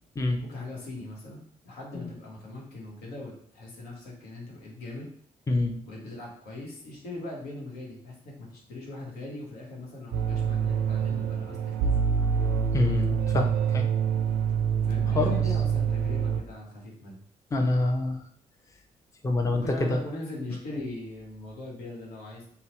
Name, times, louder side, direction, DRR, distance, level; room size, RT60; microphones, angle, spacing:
voice 1, 0.4-5.1 5.8-11.9 14.8-17.2 19.4-22.4, left 2 dB, 85° left, -2 dB, 0.9 m, -40 dB
sound 1, 10.1-16.4, right 7 dB, 75° right, 0.4 m, -26 dB
voice 2, 12.7-13.9 15.1-15.4 17.5-18.2 19.2-20.0, left 2 dB, 20° left, 3 dB, 0.5 m, -26 dB
2.8 x 2.0 x 2.9 m, 0.63 s
supercardioid pair, 60°, 16 cm